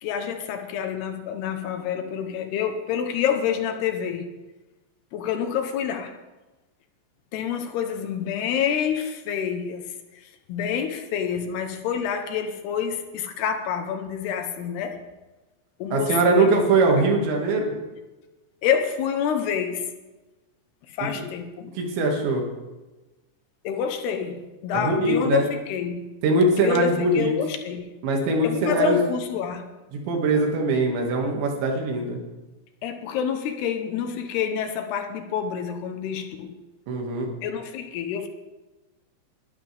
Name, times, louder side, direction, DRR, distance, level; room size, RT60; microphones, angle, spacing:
voice 1, 0.0-4.3 5.1-6.1 7.3-9.9 10.5-15.0 15.8-16.5 17.0-17.1 18.6-19.9 21.0-21.7 23.6-26.0 26.6-27.8 28.4-29.6 32.8-36.6 37.4-38.3, left 7 dB, 75° left, 6 dB, 2.9 m, -27 dB
voice 2, 15.9-17.8 21.2-21.3 21.8-22.4 24.7-25.4 26.2-27.3 28.0-29.0 29.9-32.2 36.9-37.3, right 2 dB, 85° right, 1 dB, 4.4 m, -22 dB
20.5 x 12.0 x 3.5 m, 1.1 s
omnidirectional pair, 5.1 m